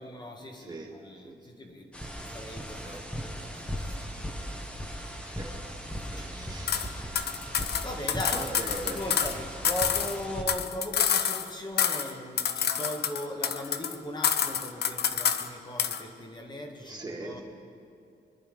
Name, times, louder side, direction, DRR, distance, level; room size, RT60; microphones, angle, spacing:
voice 1, 0.0-4.8 5.9-6.7 7.8-8.5 8.9-17.4, left 1 dB, 25° left, 3 dB, 1.4 m, -39 dB
voice 2, 0.6-0.9 1.2-1.3 2.8-3.0 5.2-5.6 6.1-7.2 8.3-9.0 16.8-17.4, right 2 dB, 25° right, 0 dB, 2.0 m, -41 dB
sound 1, 1.9-10.4, equal, 5° left, 1.2 m, -38 dB
sound 2, 6.7-6.9 7.2-9.4 9.6-11.5 11.8-12.1 12.4-14.0 14.2-15.5 15.8-16.0, left 8 dB, 70° left, 0.8 m, -28 dB
24.0 x 11.0 x 5.2 m, 2.5 s
wide cardioid pair, 170°, 17 cm